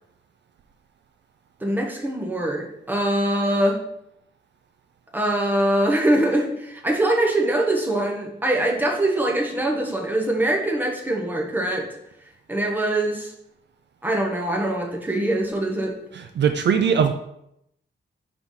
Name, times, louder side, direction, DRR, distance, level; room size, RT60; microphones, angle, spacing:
voice 1, 1.6-3.8 5.1-11.9 12.5-13.3 14.0-15.9, right 1 dB, 10° right, 0 dB, 1.1 m, -23 dB
voice 2, 16.1-17.1, right 7 dB, 60° right, 7 dB, 0.5 m, -20 dB
4.5 x 3.9 x 5.5 m, 0.78 s
wide cardioid pair, 125°, 20 cm